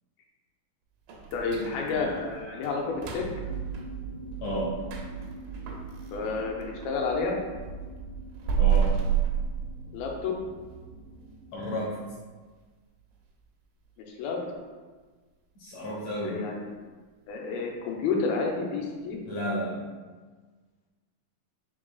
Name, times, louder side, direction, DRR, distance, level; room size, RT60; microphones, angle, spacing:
sound 1, 1.1-7.0 7.4-10.2 10.6-10.7 11.2-11.3 11.8-12.1 12.5-12.6 13.1-13.2, right 8 dB, 80° right, 2.1 m, -31 dB
voice 1, 1.3-3.3 6.1-7.4 9.9-10.4 14.0-14.4 16.2-16.7 17.3-19.2, left 4 dB, 90° left, 0 dB, 2.5 m, -30 dB
sound 2, 3.3-12.0, right 4 dB, 50° left, 1.4 m, -41 dB
voice 2, 4.4-4.7 8.6-8.9 11.5-12.0 15.6-16.4 19.3-19.8, equal, 70° left, -6 dB, 1.7 m, -32 dB
5.4 x 3.7 x 2.3 m, 1.4 s
omnidirectional pair, 4.1 m